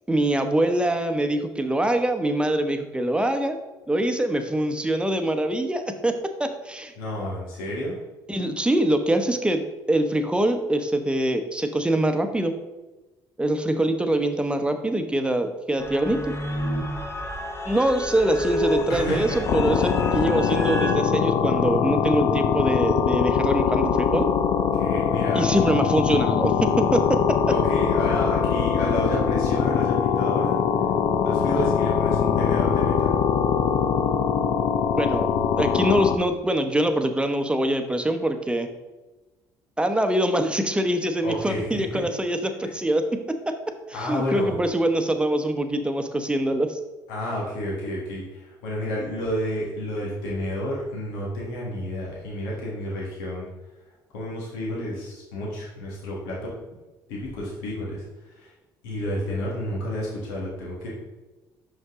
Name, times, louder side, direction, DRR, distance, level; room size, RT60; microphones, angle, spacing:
voice 1, 0.1-3.6 3.9-6.9 8.3-12.5 13.4-16.3 17.7-24.3 25.3-27.4 34.9-38.7 39.8-43.5 43.9-46.8, right 1 dB, 10° right, 7 dB, 0.8 m, -24 dB
voice 2, 7.0-8.0 18.9-19.4 20.0-20.1 24.8-25.4 27.5-30.6 31.2-33.1 41.2-42.0 43.9-44.6 47.1-53.4 54.1-56.5 57.1-58.0 58.4-58.5 58.8-60.9, left 1 dB, 90° left, -4 dB, 1.6 m, -30 dB
sound 1, 15.8-20.9, left 1 dB, 25° left, 1.1 m, -30 dB
sound 2, 19.5-36.2, left 7 dB, 65° left, 0.6 m, -22 dB
5.9 x 5.3 x 3.6 m, 1.1 s
supercardioid pair, 65°, 10 cm